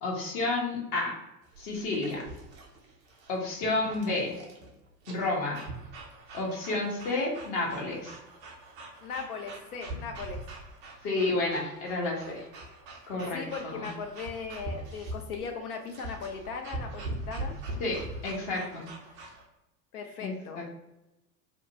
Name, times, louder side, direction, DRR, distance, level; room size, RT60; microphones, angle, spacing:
voice 1, 0.0-1.1 1.6-2.3 3.3-4.4 5.1-5.6 6.3-8.2 11.0-12.4 13.1-13.9 17.8-18.8 20.2-20.7, left 2 dB, 40° left, -2 dB, 0.9 m, -31 dB
sound 1, 1.4-19.4, right 2 dB, 25° right, 0.4 m, -42 dB
voice 2, 9.0-10.4 13.3-17.5 19.9-20.6, left 5 dB, 65° left, 4 dB, 0.5 m, -38 dB
2.5 x 2.1 x 2.7 m, 0.94 s
figure-of-eight pair, 80°, 49 cm